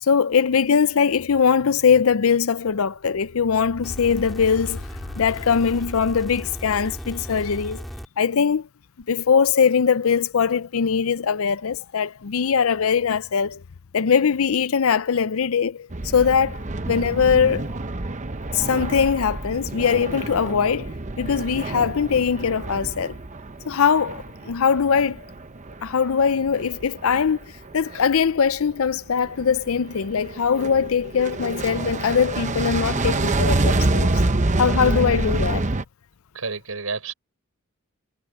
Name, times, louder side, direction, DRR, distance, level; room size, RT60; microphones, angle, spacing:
voice 1, 0.0-7.9 8.2-8.7 9.1-13.6 13.9-17.7 18.5-23.2 23.7-25.2 25.8-34.2 34.6-35.7, left 6 dB, 70° left, 0.5 m, -21 dB
sound 1, 3.8-8.1 9.0-9.1, equal, ahead, 2.6 m, -36 dB
sound 2, 15.9-28.2 28.6-28.9 29.2-35.8, right 2 dB, 35° right, 1.0 m, -27 dB
voice 2, 36.3-37.1, right 4 dB, 85° right, 4.4 m, -30 dB
head